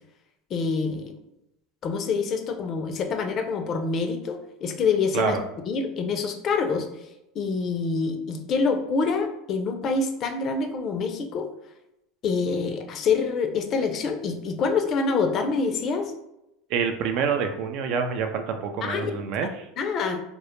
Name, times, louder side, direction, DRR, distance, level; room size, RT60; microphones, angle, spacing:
voice 1, 0.5-1.2 1.8-5.4 5.7-6.9 7.4-11.5 12.2-16.1 18.8-19.1 19.8-20.2, left 4 dB, 45° left, 5 dB, 0.4 m, -26 dB
voice 2, 16.7-19.7, right 6 dB, 60° right, 6 dB, 0.3 m, -27 dB
2.1 x 2.0 x 2.9 m, 0.86 s
supercardioid pair, 105°, 0 cm